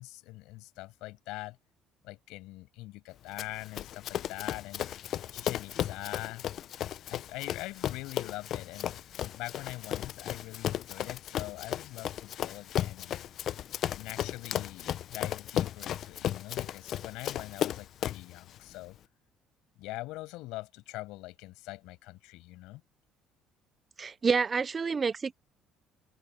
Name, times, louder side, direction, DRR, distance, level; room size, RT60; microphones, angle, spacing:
voice 1, 0.0-1.6 2.0-4.9 5.3-6.4 7.1-13.2 13.9-19.0 19.8-22.8, left 19 dB, 85° left, 6.2 m, -43 dB
Run, 3.4-18.3, left 11 dB, 45° left, 0.5 m, -35 dB
voice 2, 24.0-25.4, right 5 dB, 20° right, 0.4 m, -28 dB
cardioid pair, 170°, 0 cm